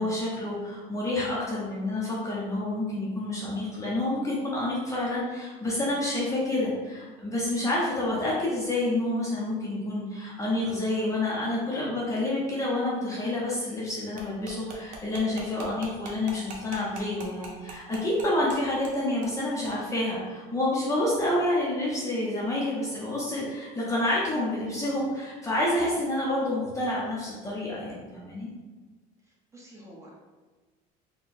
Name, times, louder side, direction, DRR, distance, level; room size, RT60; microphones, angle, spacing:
voice 1, 0.0-28.5, left 1 dB, 15° left, -6 dB, 0.7 m, -28 dB
sound 1, 14.2-18.6 18.8-18.9 19.2-19.4 19.6-19.7, right 3 dB, 45° right, 0.8 m, -41 dB
voice 2, 29.2-30.2, equal, 15° right, -4 dB, 0.8 m, -49 dB
3.8 x 2.2 x 4.2 m, 1.3 s
cardioid pair, 150°, 18 cm